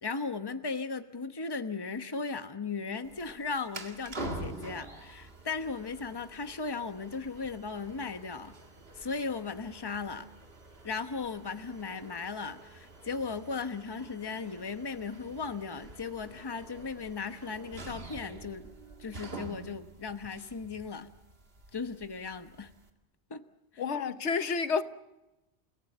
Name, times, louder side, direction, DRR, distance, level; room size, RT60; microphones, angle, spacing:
voice 1, 0.0-8.5 8.9-10.3 10.8-18.7 19.0-21.1 21.7-22.7 23.3-23.4 23.7-23.8, left 4 dB, 25° left, 1.0 m, -37 dB
sound 1, 3.0-22.9, right 2 dB, 60° right, 2.3 m, -47 dB
voice 2, 23.8-24.8, left 5 dB, 85° left, 1.3 m, -29 dB
29.0 x 17.0 x 7.9 m
omnidirectional pair, 1.1 m